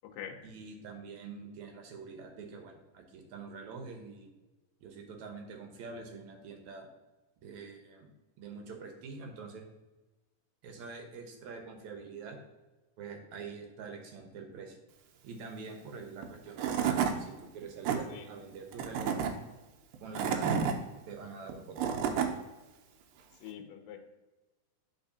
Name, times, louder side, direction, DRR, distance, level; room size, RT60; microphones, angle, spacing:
voice 1, 0.4-4.3 4.8-6.9 7.4-8.1 8.4-9.6 10.6-12.4 13.0-14.8 15.2-19.1 20.0-20.6 21.1-22.1, right 4 dB, 70° right, 3 dB, 2.0 m, -45 dB
Tools / Wood, 16.2-16.3 16.6-17.1 17.6-18.0 18.7-19.3 19.9-20.7 21.5-22.3, right 7 dB, 85° right, 2.4 m, -29 dB
voice 2, 23.4-24.1, left 9 dB, 80° left, 3 dB, 2.4 m, -44 dB
11.0 x 4.1 x 2.7 m, 1.1 s
omnidirectional pair, 4.0 m